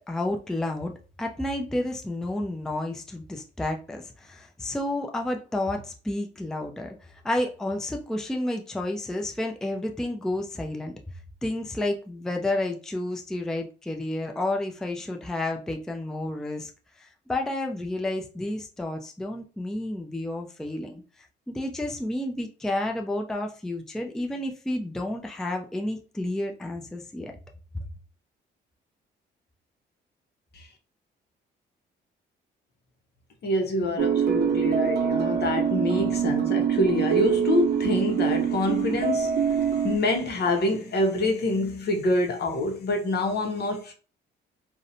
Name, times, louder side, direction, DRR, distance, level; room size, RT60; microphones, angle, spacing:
voice 1, 0.1-0.9 1.2-7.0 7.2-10.9 11.4-16.7 17.0-21.0 21.5-27.3, left 1 dB, 5° left, 0.4 m, -30 dB
voice 2, 33.4-43.9, left 2 dB, 55° left, 0.7 m, -26 dB
sound 1, 34.0-40.0, right 8 dB, 55° right, 0.6 m, -24 dB
2.6 x 2.0 x 2.6 m
cardioid pair, 90°, 20 cm